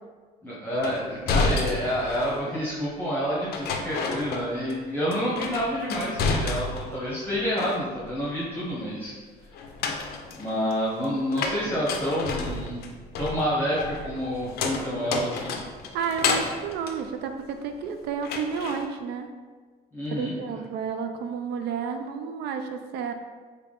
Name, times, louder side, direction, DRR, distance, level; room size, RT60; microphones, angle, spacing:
voice 1, 0.4-9.2 10.4-12.8 13.2-15.5 19.9-20.4, equal, 10° left, -8 dB, 0.8 m, -28 dB
sound 1, 0.8-2.5 3.5-4.8 5.1-7.0 7.3-8.1 9.5-17.8 18.2-18.8, left 4 dB, 70° left, 0.4 m, -30 dB
voice 2, 15.9-19.3 20.1-23.1, right 6 dB, 80° right, 7 dB, 0.4 m, -31 dB
3.4 x 2.2 x 3.7 m, 1.4 s
cardioid pair, 110°, 17 cm